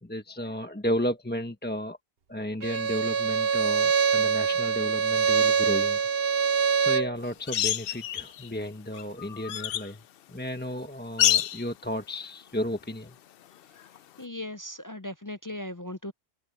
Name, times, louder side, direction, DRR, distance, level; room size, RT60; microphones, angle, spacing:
voice 1, 0.0-2.0 2.3-6.0 6.4-6.5 6.8-10.0 10.3-13.2, left 1 dB, 10° left, 1.2 m, -33 dB
Bowed string instrument, 2.6-7.2, right 6 dB, 65° right, 1.2 m, -24 dB
sound 1, 7.5-8.5 8.9-9.9 11.2-11.7 14.0-14.1, left 11 dB, 65° left, 0.7 m, -27 dB
voice 2, 14.2-16.1, left 1 dB, 30° left, 0.3 m, -37 dB
omnidirectional pair, 1.1 m